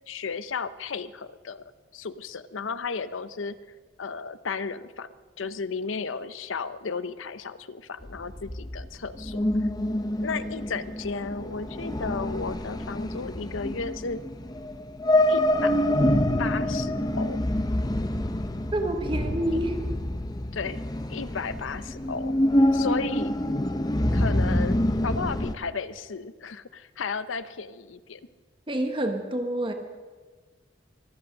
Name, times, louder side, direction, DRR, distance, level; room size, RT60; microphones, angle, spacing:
voice 1, 0.1-1.6 1.9-3.6 4.0-5.1 5.4-9.4 10.2-14.2 15.3-15.7 16.4-17.4 20.5-20.8 21.1-22.3 22.7-23.3 24.1-28.2, left 5 dB, 85° left, 14 dB, 0.7 m, -34 dB
sound 1, 8.0-25.5, left 1 dB, 20° left, 0.6 m, -26 dB
voice 2, 18.7-19.8 28.7-29.7, right 1 dB, 25° right, 5 dB, 1.0 m, -27 dB
24.0 x 8.7 x 6.5 m, 1.5 s
head